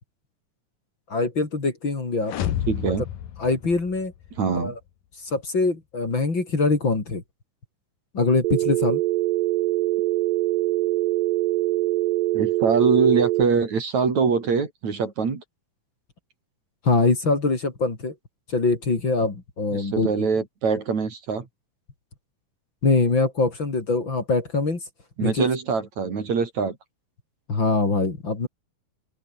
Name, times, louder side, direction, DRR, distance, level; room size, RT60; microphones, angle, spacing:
voice 1, 1.1-2.3 3.4-4.1 4.5-4.8 5.2-7.2 8.1-9.0 16.8-18.1 18.5-20.3 22.8-24.8 25.2-25.5 27.5-28.5, left 3 dB, 35° left, 4.5 m, -23 dB
sound 1, 2.2-4.4, left 10 dB, 80° left, 3.5 m, -30 dB
voice 2, 2.7-3.0 4.4-4.7 12.3-15.4 19.7-21.5 25.2-26.8, right 5 dB, 55° right, 4.8 m, -23 dB
Telephone, 8.4-13.4, right 18 dB, 90° right, 2.4 m, -23 dB
omnidirectional pair, 3.9 m